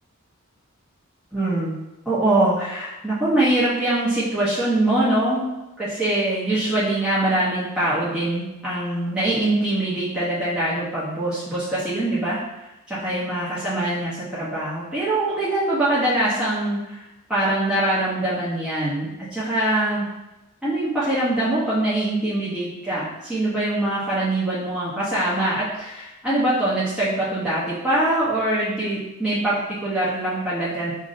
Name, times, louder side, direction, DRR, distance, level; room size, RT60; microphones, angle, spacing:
voice 1, 1.3-1.7 2.1-5.5 5.8-12.4 12.9-17.0 17.3-20.1 20.6-30.9, right 1 dB, 5° right, -11 dB, 0.7 m, -23 dB
5.1 x 2.6 x 2.5 m, 0.98 s
head